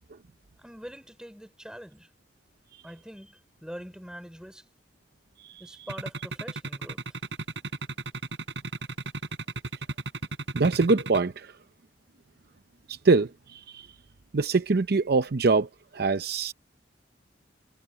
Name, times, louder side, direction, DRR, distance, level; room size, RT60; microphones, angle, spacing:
voice 1, 0.6-2.1 2.8-4.6 5.6-7.2, equal, 5° right, 5.3 m, -44 dB
sound 1, 5.9-11.2, right 2 dB, 80° right, 7.7 m, -34 dB
voice 2, 10.5-11.5 12.9-13.9 14.3-16.5, right 3 dB, 60° right, 0.7 m, -24 dB
head